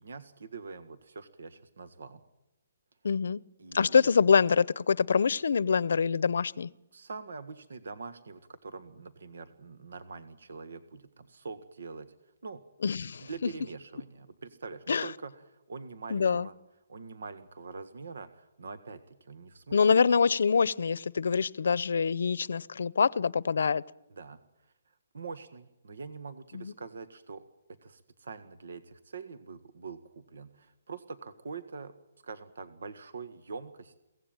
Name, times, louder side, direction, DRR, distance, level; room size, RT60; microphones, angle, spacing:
voice 1, 0.0-2.2 3.6-4.1 6.9-12.1 12.4-12.6 13.2-16.5 16.9-20.0 24.1-24.4 25.1-31.9 32.2-34.0, right 4 dB, 80° right, 13 dB, 1.7 m, -44 dB
voice 2, 3.0-3.4 3.7-6.7 12.8-13.5 14.9-15.1 16.1-16.5 19.7-23.8 26.5-26.7, left 6 dB, 75° left, 22 dB, 0.7 m, -25 dB
23.0 x 17.5 x 9.0 m, 0.94 s
hypercardioid pair, 165°, 0 cm